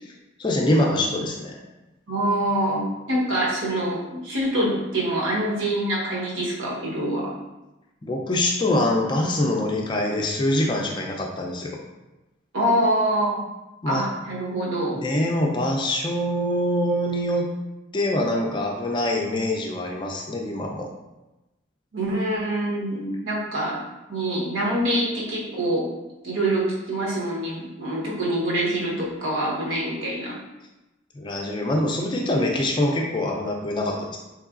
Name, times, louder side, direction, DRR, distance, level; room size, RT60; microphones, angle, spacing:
voice 1, 0.4-1.6 8.0-11.7 13.8-14.0 14.9-17.5 17.9-20.9 31.1-34.2, left 1 dB, 25° left, 0 dB, 0.4 m, -24 dB
voice 2, 2.1-7.3 12.5-13.4 13.9-15.0 21.9-23.8 24.1-25.9 26.2-30.4, right 1 dB, 80° right, -5 dB, 1.1 m, -25 dB
3.7 x 3.2 x 2.4 m, 1.0 s
head